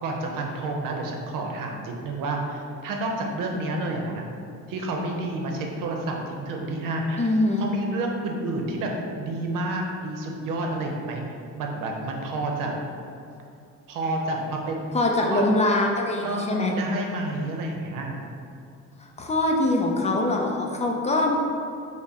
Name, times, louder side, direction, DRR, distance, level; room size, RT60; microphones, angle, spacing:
voice 1, 0.0-4.2 4.7-7.3 7.6-8.9 9.2-11.2 11.6-12.7 13.9-15.0 15.3-15.6 16.2-18.2, right 2 dB, 85° right, 1 dB, 0.7 m, -29 dB
voice 2, 7.2-7.7 14.9-16.7 19.0-21.4, left 2 dB, 20° left, 0 dB, 0.4 m, -23 dB
5.6 x 2.1 x 3.5 m, 2.5 s
cardioid pair, 120°, 32 cm